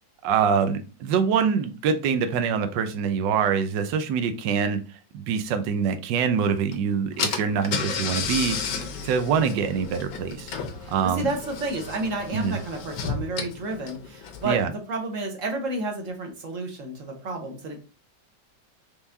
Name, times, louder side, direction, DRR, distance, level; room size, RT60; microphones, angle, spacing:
voice 1, 0.2-4.8 5.1-8.6 9.0-10.5 10.9-11.3 12.3-12.6 14.4-14.7, right 6 dB, 75° right, 1.3 m, -24 dB
Car / Engine, 6.7-6.8 7.2-14.6, left 5 dB, 85° left, 1.6 m, -32 dB
voice 2, 10.8-17.8, right 2 dB, 50° right, 1.2 m, -31 dB
4.6 x 3.6 x 2.7 m
omnidirectional pair, 2.1 m